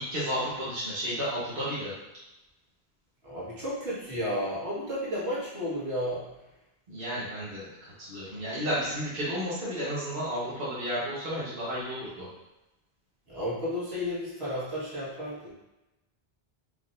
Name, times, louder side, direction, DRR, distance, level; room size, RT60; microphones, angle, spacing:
voice 1, 0.0-1.9 6.9-12.3, equal, 60° right, -10 dB, 1.4 m, -32 dB
voice 2, 3.2-6.3 13.3-15.5, equal, 75° right, -9 dB, 1.9 m, -32 dB
4.8 x 3.8 x 2.6 m, 0.97 s
omnidirectional pair, 1.1 m